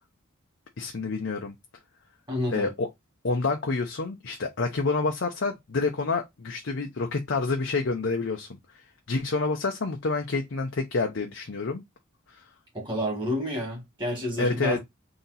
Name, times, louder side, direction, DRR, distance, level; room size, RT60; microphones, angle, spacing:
voice 1, 0.8-1.5 2.5-2.9 3.2-8.6 9.1-11.8 12.4-12.5 14.4-14.8, left 3 dB, 65° left, 0.7 m, -28 dB
voice 2, 2.3-2.7 12.7-14.8, equal, 25° right, 2.2 m, -29 dB
3.9 x 2.9 x 4.0 m
head